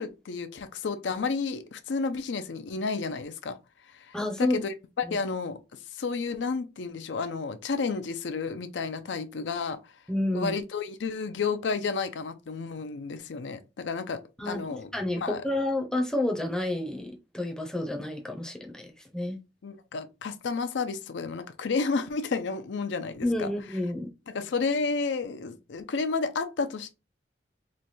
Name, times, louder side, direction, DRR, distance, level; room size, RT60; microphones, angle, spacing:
voice 1, 0.0-3.6 3.8-5.6 5.9-9.9 10.3-14.2 14.5-14.9 15.2-15.4 19.6-23.5 24.3-26.9, left 4 dB, 80° left, 0.5 m, -31 dB
voice 2, 4.1-4.6 5.1-5.2 10.1-10.5 14.4-18.9 19.1-19.4 23.2-24.1, left 1 dB, 5° left, 0.6 m, -30 dB
3.2 x 2.2 x 4.1 m
head